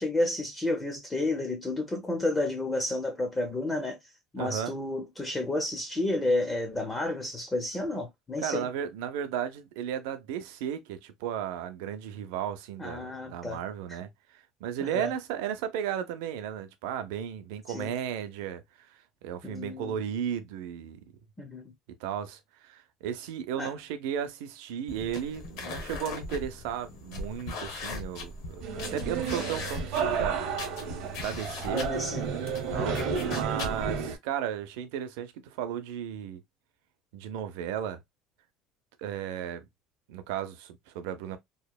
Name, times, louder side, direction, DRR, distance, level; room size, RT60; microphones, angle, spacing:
voice 1, 0.0-4.0 4.3-8.7 12.8-13.6 14.8-15.1 17.7-17.9 19.4-19.9 21.4-21.7 23.6-23.7 28.9-29.2 31.7-32.2 32.7-33.4, left 2 dB, 10° left, 0.4 m, -31 dB
voice 2, 4.4-4.8 8.4-21.0 22.0-28.6 28.9-30.4 30.8-31.9 32.7-33.0 33.2-36.4 37.1-38.0 39.0-39.7 40.1-41.4, right 9 dB, 90° right, 0.5 m, -35 dB
sound 1, 24.9-34.0, left 2 dB, 60° left, 0.8 m, -39 dB
sound 2, 28.6-34.2, right 6 dB, 55° right, 0.7 m, -32 dB
2.8 x 2.0 x 2.2 m
cardioid pair, 175°, 0 cm